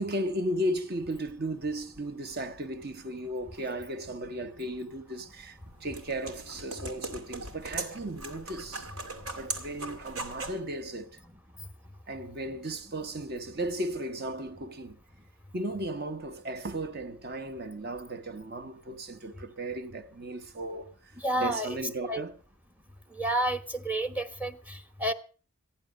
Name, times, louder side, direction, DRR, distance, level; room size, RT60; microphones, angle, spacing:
voice 1, 0.0-8.9 9.4-11.2 12.1-15.0 15.5-22.4, right 1 dB, 45° right, 1.1 m, -35 dB
sound 1, 5.4-10.6, right 3 dB, 90° right, 2.9 m, -39 dB
voice 2, 21.2-21.8 22.1-22.2 23.2-25.1, right 1 dB, 5° right, 1.1 m, -30 dB
14.5 x 10.5 x 6.3 m
head